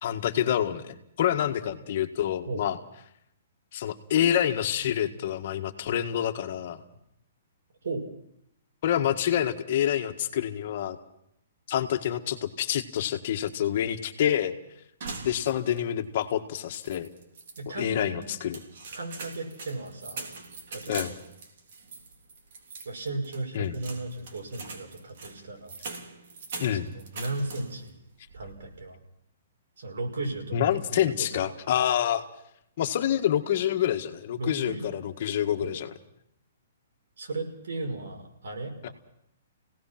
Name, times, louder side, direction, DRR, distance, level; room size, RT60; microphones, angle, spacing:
voice 1, 0.0-2.8 3.7-6.8 8.8-11.0 11.7-14.5 15.2-17.1 17.8-18.6 20.9-21.1 23.5-23.8 26.6-26.9 30.5-32.2 32.8-35.9 38.8-38.9, left 10 dB, 50° left, 7 dB, 1.7 m, -27 dB
sound 1, 15.0-15.9 16.2-16.3 16.7-17.6 18.2-27.9 28.3-28.8, right 4 dB, 55° right, 3.6 m, -42 dB
voice 2, 17.6-18.3 18.9-20.2 20.7-21.1 22.9-25.8 26.7-28.0 28.3-29.0 29.8-31.3 34.4-35.0 35.6-35.8 37.2-38.9, right 2 dB, 80° right, 2 dB, 5.6 m, -36 dB
28.0 x 17.5 x 6.0 m, 0.74 s
hypercardioid pair, 155°, 0 cm